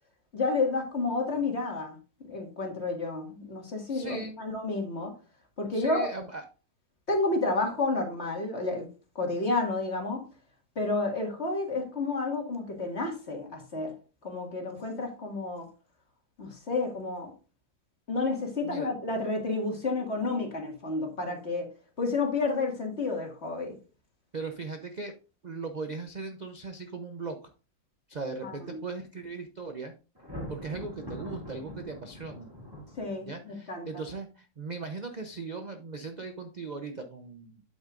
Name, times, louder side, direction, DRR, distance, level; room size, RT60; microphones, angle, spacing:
voice 1, 0.3-2.0 2.2-5.1 5.6-6.1 7.1-8.8 9.2-10.2 10.8-13.9 14.2-15.7 16.4-17.3 18.1-21.7 22.0-23.7 28.4-28.8 33.0-33.9, left 3 dB, 40° left, 2.2 m, -30 dB
voice 2, 3.9-4.4 5.7-6.4 18.6-18.9 24.3-25.2 25.4-27.5 28.1-29.9 30.5-32.5 33.2-37.6, right 4 dB, 40° right, 0.6 m, -38 dB
Thunder, 30.1-33.5, left 1 dB, 15° right, 2.3 m, -42 dB
8.7 x 8.3 x 2.5 m
omnidirectional pair, 1.7 m